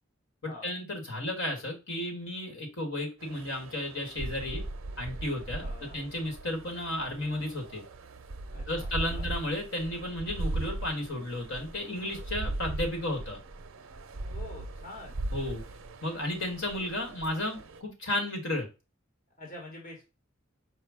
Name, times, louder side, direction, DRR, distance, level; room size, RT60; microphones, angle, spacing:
voice 1, 0.4-4.6 5.0-7.8 8.7-13.4 15.3-15.6 16.0-18.7, left 1 dB, 70° left, 2 dB, 1.5 m, -33 dB
sound 1, 3.2-17.8, right 2 dB, 90° right, 0.5 m, -39 dB
voice 2, 5.6-6.0 8.5-9.3 14.3-15.2 19.4-20.1, left 2 dB, 45° left, 0 dB, 1.2 m, -46 dB
4.9 x 2.2 x 4.7 m, 0.29 s
head